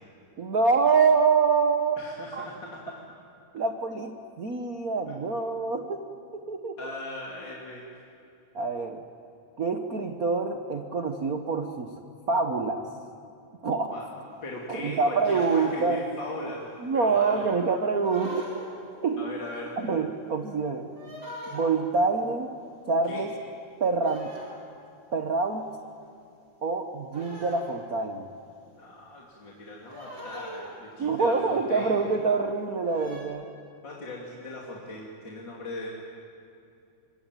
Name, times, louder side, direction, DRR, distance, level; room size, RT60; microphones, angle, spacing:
voice 1, 0.4-2.0 2.3-2.5 3.5-6.0 6.3-6.9 8.5-9.0 9.6-11.9 12.3-12.9 13.6-13.9 14.7-16.0 16.8-18.5 19.0-19.4 19.8-20.9 21.5-22.5 22.9-23.3 23.8-24.3 25.1-25.7 26.6-28.3 31.0-33.5, right 4 dB, 85° right, 6 dB, 0.7 m, -26 dB
voice 2, 2.0-3.0 5.1-5.2 6.8-7.8 13.9-14.1 14.4-16.7 16.9-17.5 19.2-19.7 23.1-23.3 28.6-32.1 33.8-35.9, left 1 dB, 35° left, -3 dB, 3.3 m, -38 dB
sound 1, 15.1-16.0 18.0-18.9 20.9-21.9 23.0-23.4 24.0-24.8 26.0-26.2 27.1-28.1 29.9-31.0 31.9-32.3 32.8-33.2, equal, 35° right, 5.4 m, -43 dB
25.0 x 22.5 x 9.1 m, 2.6 s
omnidirectional pair, 3.5 m